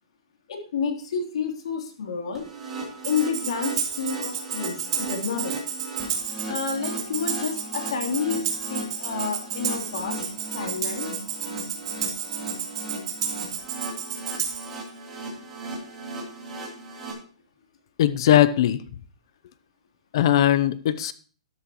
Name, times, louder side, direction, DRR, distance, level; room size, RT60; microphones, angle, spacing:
voice 1, 0.5-2.4 3.0-5.6 6.5-11.1, left 5 dB, 70° left, 2 dB, 3.4 m, -30 dB
sound 1, 2.3-17.1, right 2 dB, 10° right, 3.2 m, -37 dB
Tambourine, 3.0-14.7, right 8 dB, 50° right, 4.0 m, -31 dB
voice 2, 18.0-18.8 20.1-21.1, left 12 dB, 45° left, 15 dB, 0.6 m, -19 dB
12.5 x 12.5 x 3.1 m, 0.40 s
hypercardioid pair, 165°, 3 cm